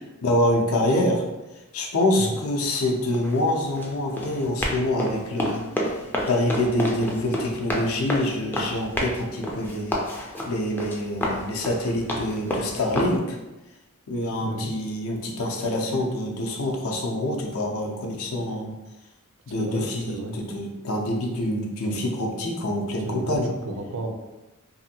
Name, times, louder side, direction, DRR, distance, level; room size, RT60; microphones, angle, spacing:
voice 1, 0.2-1.2 1.7-5.6 6.2-13.4 14.1-18.8 19.5-23.5, left 1 dB, 70° left, 1 dB, 0.5 m, -26 dB
Run, 2.6-13.2, equal, 10° left, 0.3 m, -30 dB
voice 2, 14.4-14.7 19.6-20.4 23.0-24.1, right 2 dB, 65° right, 3 dB, 0.5 m, -32 dB
2.7 x 2.5 x 2.7 m, 1.0 s
head